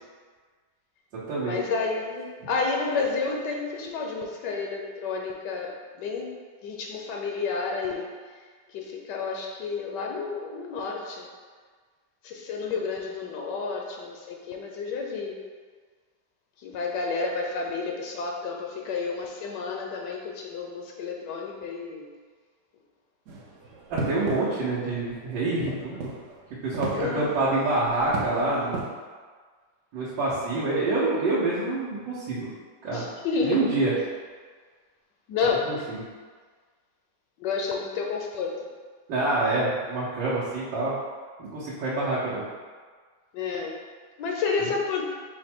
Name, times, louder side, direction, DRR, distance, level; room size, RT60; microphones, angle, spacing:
voice 1, 1.4-5.7 6.0-6.4 6.6-8.1 8.7-11.3 12.2-15.3 16.6-22.1 26.9-27.4 32.9-33.6 35.3-35.8 37.4-38.6 43.3-43.7 44.2-45.1, left 4 dB, 75° left, 0 dB, 1.2 m, -30 dB
sound 1, 23.2-28.9, right 3 dB, 60° right, 0.8 m, -37 dB
voice 2, 23.9-26.0 26.6-28.8 29.9-32.5 32.8-33.0 33.4-33.9 35.7-36.0 39.1-40.9 41.4-42.4, right 2 dB, 85° right, -10 dB, 1.6 m, -26 dB
5.1 x 2.2 x 4.3 m, 1.5 s
omnidirectional pair, 2.0 m